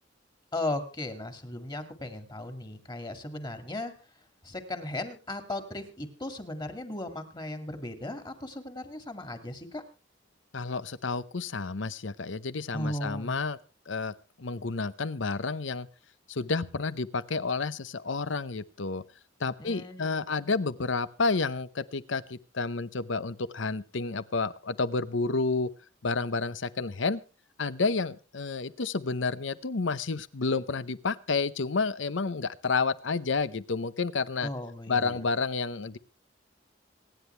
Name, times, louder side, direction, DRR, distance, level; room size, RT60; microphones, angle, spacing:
voice 1, 0.5-3.9 4.4-9.8 12.7-13.4 19.6-20.5 34.4-35.2, left 1 dB, 25° left, 9 dB, 2.3 m, -36 dB
voice 2, 10.5-13.6 13.9-15.9 16.3-19.0 19.4-25.7 26.0-27.2 27.6-34.5 34.9-36.0, left 4 dB, 70° left, 16 dB, 0.8 m, -30 dB
26.0 x 10.0 x 3.3 m, 0.32 s
head